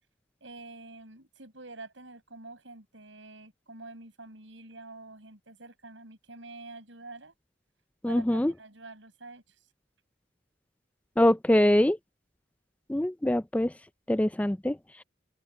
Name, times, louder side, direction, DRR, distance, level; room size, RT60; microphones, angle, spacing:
voice 1, 0.4-7.3 8.1-8.2 8.6-9.6, right 2 dB, 80° right, 6.5 m, -47 dB
voice 2, 8.0-8.5 11.2-12.0 12.9-13.7 14.1-14.8, left 1 dB, 5° left, 0.3 m, -23 dB
open air
head